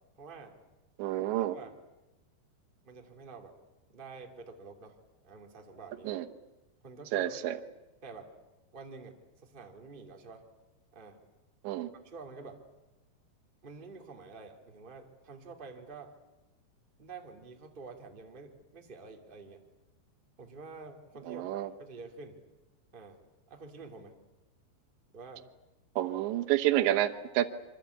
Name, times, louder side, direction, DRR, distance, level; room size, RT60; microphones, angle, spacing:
voice 1, 0.2-0.5 1.3-1.7 2.8-3.5 3.9-4.9 5.2-6.1 6.8-7.3 8.0-8.3 8.7-9.1 9.4-10.4 10.9-11.2 12.0-12.6 13.6-16.1 17.0-19.6 20.4-21.5 21.8-22.4 22.9-23.2 23.5-24.1 25.1-25.4, right 4 dB, 15° right, 2 dB, 1.9 m, -48 dB
voice 2, 1.0-1.6 6.0-6.3 7.1-7.6 11.6-11.9 21.3-21.7 26.0-27.5, right 13 dB, 85° right, 7 dB, 3.3 m, -29 dB
27.0 x 25.0 x 8.4 m, 1.0 s
omnidirectional pair, 5.1 m